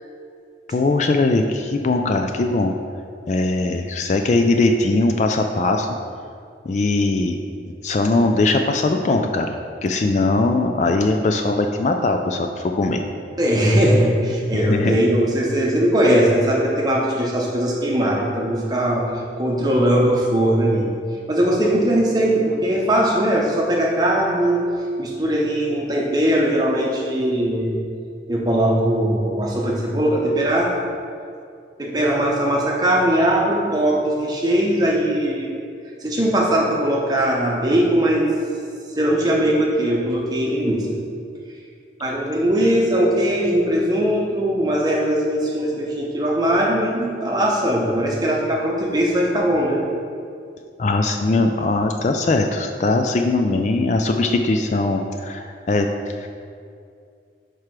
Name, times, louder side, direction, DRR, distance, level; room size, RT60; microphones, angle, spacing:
voice 1, 0.7-2.7 3.3-5.9 6.7-7.4 7.8-9.6 9.8-13.0 14.5-15.0 50.8-56.3, left 2 dB, 40° left, 4 dB, 0.3 m, -20 dB
voice 2, 13.4-20.9 21.3-24.7 25.0-27.8 28.3-30.7 31.8-35.5 36.0-38.3 39.0-40.9 42.0-49.8, right 1 dB, 20° right, -2 dB, 0.9 m, -20 dB
4.8 x 4.7 x 5.8 m, 2.3 s
head